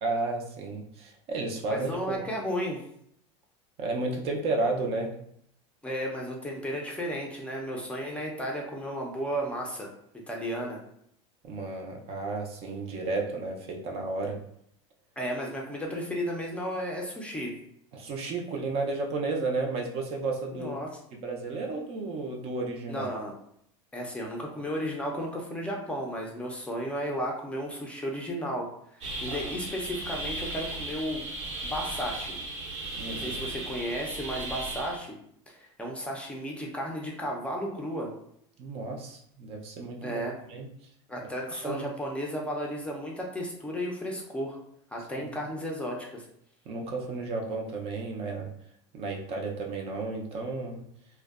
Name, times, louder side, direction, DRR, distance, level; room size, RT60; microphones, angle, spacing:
voice 1, 0.0-2.2 3.8-5.1 11.4-14.4 17.9-20.7 21.1-23.1 29.3-29.6 32.9-33.3 38.6-40.2 40.5-40.7 41.5-41.8 46.7-48.5 48.9-50.8, right 3 dB, 45° right, 1 dB, 0.5 m, -32 dB
voice 2, 1.7-2.8 5.8-9.9 10.3-10.8 15.2-17.5 20.5-20.9 22.9-23.3 23.9-31.3 31.6-32.4 33.1-35.2 35.5-38.1 40.0-40.4 41.1-44.6 44.9-46.2, equal, 10° left, -1 dB, 0.5 m, -34 dB
sound 1, 29.0-35.0, right 2 dB, 75° right, 0.8 m, -36 dB
2.5 x 2.1 x 2.3 m, 0.69 s
supercardioid pair, 115°, 15 cm